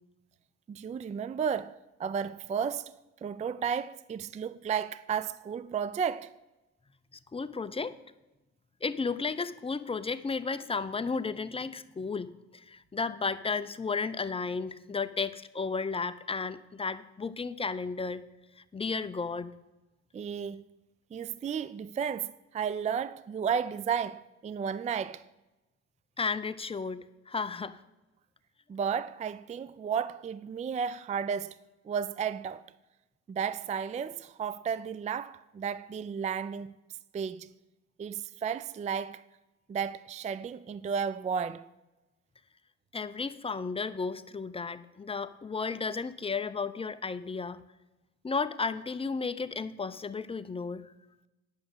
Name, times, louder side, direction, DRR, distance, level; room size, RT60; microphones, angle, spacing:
voice 1, 0.7-2.9 3.2-6.3 20.1-20.6 21.1-25.3 28.7-31.6 31.9-32.7 33.3-36.7 37.1-37.5 38.0-39.2 39.7-41.7, right 7 dB, 25° right, 0.3 m, -33 dB
voice 2, 7.3-8.0 8.8-18.2 18.7-19.5 26.2-27.8 42.9-47.6 48.2-50.9, left 4 dB, 20° left, 0.6 m, -33 dB
9.5 x 6.3 x 7.8 m
cardioid pair, 90°, 30 cm